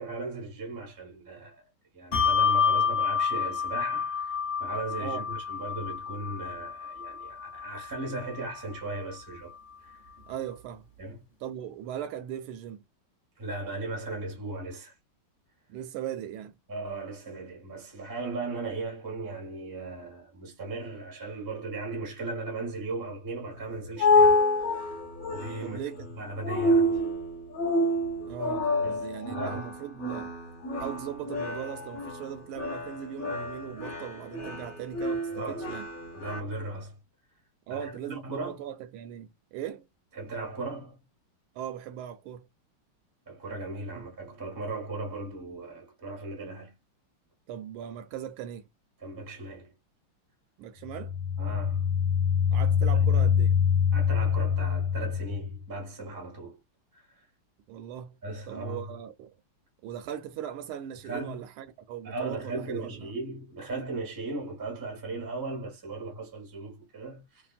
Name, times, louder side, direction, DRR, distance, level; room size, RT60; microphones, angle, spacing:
voice 1, 0.0-1.6 1.9-9.5 9.8-10.0 11.0-11.2 13.4-14.9 16.7-25.0 25.3-25.8 26.2-27.0 28.8-29.6 35.3-35.7 36.1-37.0 37.7-38.6 40.1-41.0 43.3-46.8 49.0-49.7 51.4-51.9 52.9-53.3 53.9-56.6 56.9-57.2 58.2-58.8 61.0-61.4 62.0-67.4, right 2 dB, 15° right, 0.6 m, -37 dB
Bell, 2.1-9.0, left 6 dB, 30° left, 1.0 m, -29 dB
voice 2, 10.3-10.9 11.4-12.8 15.7-16.6 25.6-26.0 28.2-30.3 30.8-35.9 37.7-39.8 41.5-42.5 43.9-44.1 47.5-48.7 50.6-51.1 52.5-53.5 57.7-58.2 58.5-59.3 59.8-63.1, right 10 dB, 80° right, 1.5 m, -39 dB
sound 1, 23.5-36.4, left 2 dB, 55° left, 1.1 m, -28 dB
sound 2, 50.9-55.6, left 7 dB, 70° left, 1.3 m, -25 dB
3.3 x 2.4 x 2.3 m
omnidirectional pair, 2.4 m